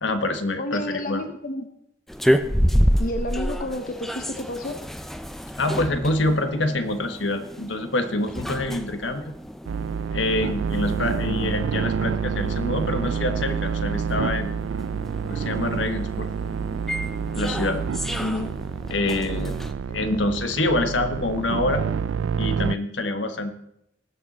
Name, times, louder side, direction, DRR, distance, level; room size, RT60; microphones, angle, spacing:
voice 1, 0.0-1.2 5.6-9.3 10.1-14.5 15.2-16.3 17.3-17.8 18.9-19.5 19.9-21.9 22.4-23.5, left 2 dB, 75° left, 8 dB, 1.3 m, -26 dB
voice 2, 0.6-1.7 3.0-4.8 11.2-11.6 18.2-18.5 20.0-20.3, left 1 dB, 45° left, 6 dB, 1.0 m, -30 dB
sound 1, 2.1-19.7, equal, ahead, 0.6 m, -30 dB
sound 2, 9.6-22.7, right 6 dB, 90° right, 0.4 m, -28 dB
19.5 x 7.6 x 4.2 m, 0.77 s
head